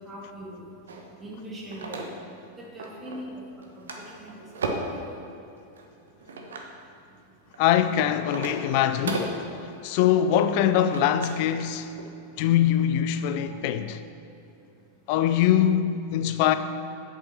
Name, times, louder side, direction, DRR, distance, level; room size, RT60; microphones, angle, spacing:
voice 1, 0.1-0.6 1.2-2.0 2.6-3.4 3.8-4.4 4.8-5.2 13.3-13.6, equal, 15° right, 2.3 m, -41 dB
sound 1, 0.9-2.5 2.8-3.3 3.6-5.0 5.7-6.7 7.4-11.5 11.8-12.0, right 2 dB, 65° right, 1.2 m, -35 dB
voice 2, 7.6-9.4 9.8-11.9 12.4-14.0 15.1-16.6, left 10 dB, 45° left, 0.4 m, -23 dB
8.5 x 7.3 x 6.9 m
figure-of-eight pair, 90°, 0 cm